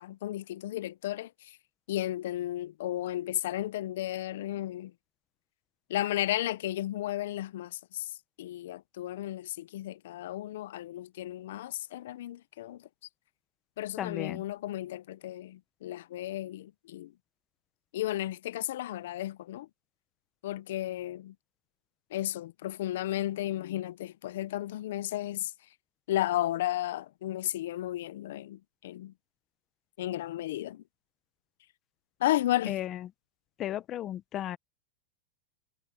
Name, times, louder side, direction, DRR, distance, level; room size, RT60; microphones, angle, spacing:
voice 1, 0.0-1.6 1.9-4.9 5.9-8.1 8.4-12.9 13.8-17.1 17.9-19.7 20.4-21.3 22.1-25.5 26.1-29.1 30.0-30.8 32.2-32.8, left 14 dB, 70° left, 0.5 m, -33 dB
voice 2, 14.0-14.4 32.7-33.0 33.6-34.6, left 12 dB, 25° left, 0.8 m, -34 dB
supercardioid pair, 165°, 0 cm